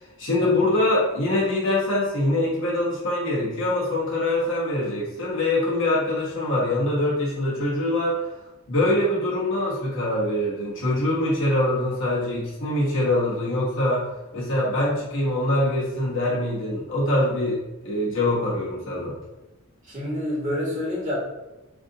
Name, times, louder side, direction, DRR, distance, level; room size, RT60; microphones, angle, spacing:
voice 1, 0.2-8.3 8.7-14.0 14.3-19.1, left 1 dB, 60° left, -5 dB, 1.3 m, -24 dB
voice 2, 19.8-21.1, left 1 dB, 35° right, -6 dB, 1.5 m, -28 dB
3.3 x 2.6 x 3.9 m, 1.0 s
head